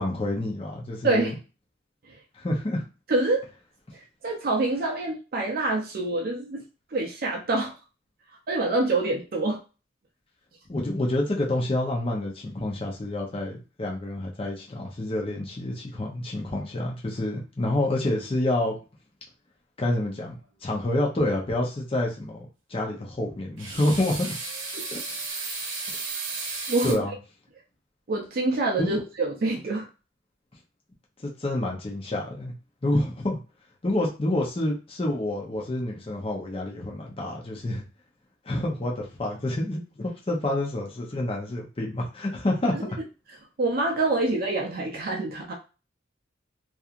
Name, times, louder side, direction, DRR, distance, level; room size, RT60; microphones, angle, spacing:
voice 1, 0.0-1.3 2.4-2.8 10.7-18.7 19.8-20.4 20.6-24.3 24.9-25.0 25.9-26.0 26.8-27.1 28.8-29.0 31.2-32.5 32.8-33.4 33.8-37.8 38.5-43.0, left 1 dB, 30° left, -1 dB, 0.6 m, -28 dB
voice 2, 1.0-1.4 2.1-2.2 3.1-3.4 4.2-6.6 6.9-7.7 8.5-9.6 24.7-24.8 26.7-26.9 28.1-29.9 43.6-45.5, right 2 dB, 50° right, 0 dB, 0.5 m, -26 dB
sound 1, 23.6-26.9, right 3 dB, 90° right, 0.8 m, -33 dB
2.8 x 2.3 x 2.4 m, 0.32 s
head